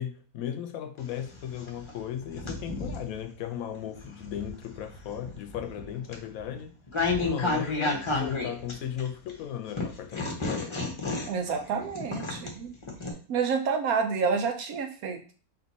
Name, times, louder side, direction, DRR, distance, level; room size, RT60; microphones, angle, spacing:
voice 1, 0.0-6.7 7.1-10.8, left 9 dB, 75° left, 1.0 m, -36 dB
sound 1, 1.0-3.1 3.7-9.3 9.8-13.1, left 3 dB, 30° left, 0.6 m, -32 dB
voice 2, 11.3-12.7 13.3-15.2, right 5 dB, 80° right, 1.2 m, -28 dB
4.4 x 2.8 x 4.0 m
omnidirectional pair, 1.6 m